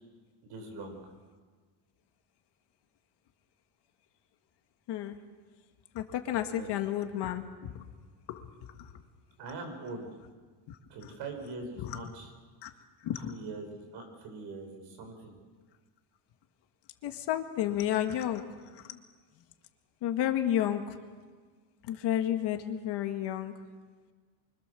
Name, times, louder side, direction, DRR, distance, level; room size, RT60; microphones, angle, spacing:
voice 1, 0.4-1.0 6.5-6.7 9.4-10.1 10.9-12.3 13.2-15.4, right 3 dB, 60° right, 4 dB, 6.0 m, -42 dB
voice 2, 5.9-7.5 8.3-8.4 8.8-8.9 10.7-11.1 11.8-12.0 12.6-12.7 13.0-13.3 17.0-18.4 18.7-19.0 20.0-21.0 21.8-23.5, left 11 dB, 55° left, 6 dB, 2.0 m, -31 dB
26.0 x 25.0 x 7.0 m, 1.5 s
cardioid pair, 175°, 47 cm